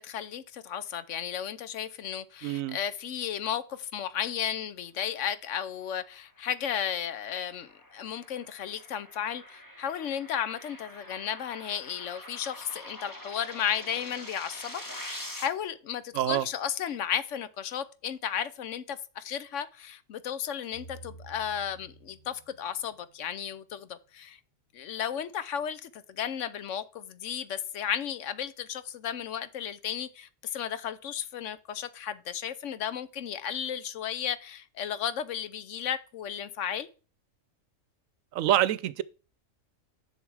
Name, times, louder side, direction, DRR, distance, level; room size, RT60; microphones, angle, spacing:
voice 1, 0.0-24.4 24.7-36.9, left 9 dB, 70° left, 1.0 m, -34 dB
voice 2, 2.4-2.8 16.1-16.5 38.3-39.0, right 12 dB, 80° right, 1.0 m, -26 dB
sound 1, 6.6-15.5, left 1 dB, 15° left, 1.5 m, -45 dB
sound 2, 20.7-23.8, right 2 dB, 35° left, 2.7 m, -52 dB
7.1 x 6.2 x 4.7 m
omnidirectional pair, 1.4 m